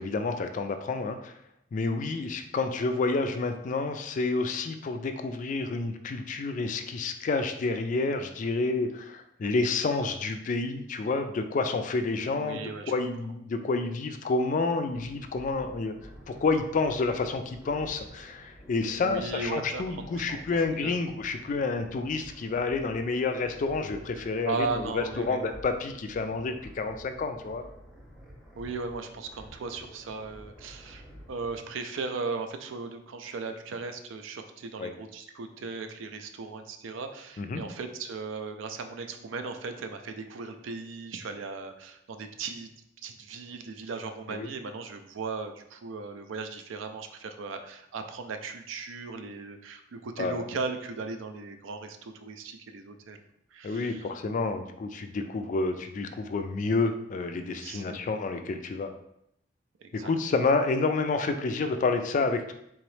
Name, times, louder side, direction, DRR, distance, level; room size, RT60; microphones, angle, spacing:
voice 1, 0.0-1.3 1.7-15.9 16.3-27.6 34.8-34.9 37.4-37.7 44.3-44.5 50.2-50.5 53.6-58.9 59.9-62.5, left 3 dB, 40° left, 7 dB, 0.3 m, -29 dB
voice 2, 12.3-12.9 19.0-21.0 24.5-25.5 28.6-42.7 43.0-53.2 53.5-54.1 57.6-58.0 58.3-58.4 59.8-60.1, right 4 dB, 75° right, 7 dB, 0.4 m, -37 dB
sound 1, 14.9-31.7, equal, 5° right, 0.7 m, -50 dB
3.7 x 3.0 x 3.1 m, 0.76 s
head